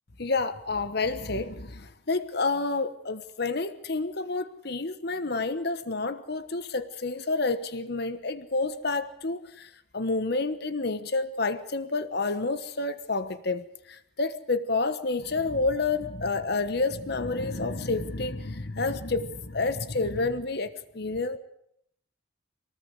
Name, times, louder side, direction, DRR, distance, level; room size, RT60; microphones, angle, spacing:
voice 1, 0.2-21.4, left 3 dB, 50° left, 11 dB, 1.2 m, -29 dB
25.0 x 19.0 x 8.1 m, 0.74 s
head